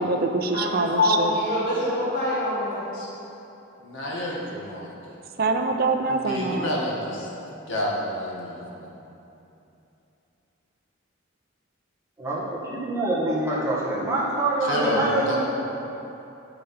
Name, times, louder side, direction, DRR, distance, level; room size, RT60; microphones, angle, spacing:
voice 1, 0.0-1.3 5.4-6.7, right 3 dB, 45° right, 5 dB, 0.7 m, -24 dB
voice 2, 0.5-3.1, left 2 dB, 45° left, -8 dB, 2.0 m, -25 dB
voice 3, 3.8-4.9 6.1-7.3 7.7-8.9 14.6-15.4, equal, 65° left, -3 dB, 1.8 m, -29 dB
voice 4, 12.2-15.4, right 2 dB, 15° right, -7 dB, 1.7 m, -25 dB
9.0 x 9.0 x 4.3 m, 2.9 s
head